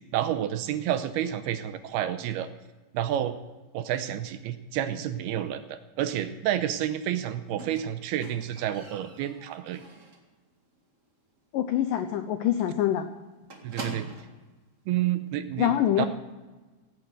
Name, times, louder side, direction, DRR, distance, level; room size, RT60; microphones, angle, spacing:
voice 1, 0.1-2.5 2.9-3.4 3.7-9.8 13.6-14.1 14.9-15.7 16.0-16.1, right 11 dB, 80° right, 10 dB, 2.5 m, -29 dB
Squeak, 7.6-10.4 10.7-11.1 11.4-11.5 11.8-11.9 12.2-12.3 12.6-14.4 15.3-15.4, right 2 dB, 40° right, 1.0 m, -44 dB
voice 2, 11.5-13.1 15.6-16.1, left 11 dB, 85° left, 8 dB, 1.9 m, -25 dB
17.0 x 9.5 x 7.9 m, 1.2 s
omnidirectional pair, 4.9 m